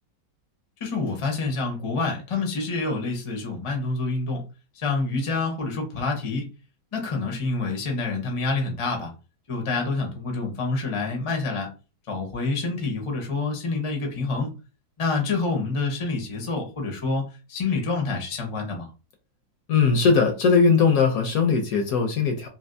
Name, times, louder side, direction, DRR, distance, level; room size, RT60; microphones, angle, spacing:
voice 1, 0.8-4.4 4.7-6.5 6.9-9.1 9.5-11.7 12.1-14.5 15.0-17.2 17.5-18.9, left 3 dB, 40° left, 2 dB, 0.4 m, -27 dB
voice 2, 19.7-22.5, left 5 dB, 70° left, 4 dB, 0.9 m, -20 dB
3.3 x 2.7 x 2.6 m, 0.32 s
omnidirectional pair, 1.9 m